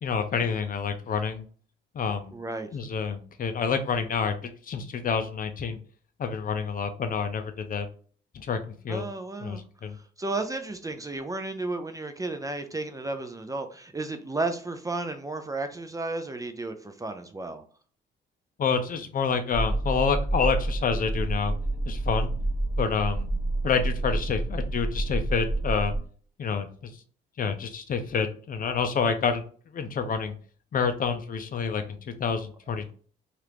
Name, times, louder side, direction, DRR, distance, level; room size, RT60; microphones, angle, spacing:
voice 1, 0.0-1.4 1.9-2.3 2.7-4.4 4.6-5.8 6.2-7.9 8.3-9.0 9.4-10.0 18.6-21.5 21.9-22.3 22.8-23.3 23.6-25.9 26.4-26.7 27.4-29.4 29.7-30.3 30.7-32.9, left 5 dB, 45° left, 8 dB, 0.5 m, -28 dB
voice 2, 2.3-2.7 8.9-9.6 9.9-17.6, right 2 dB, 15° right, 7 dB, 0.4 m, -33 dB
sound 1, 19.5-26.0, right 2 dB, 15° left, 1.2 m, -28 dB
2.8 x 2.5 x 3.3 m, 0.43 s
cardioid pair, 90°, 20 cm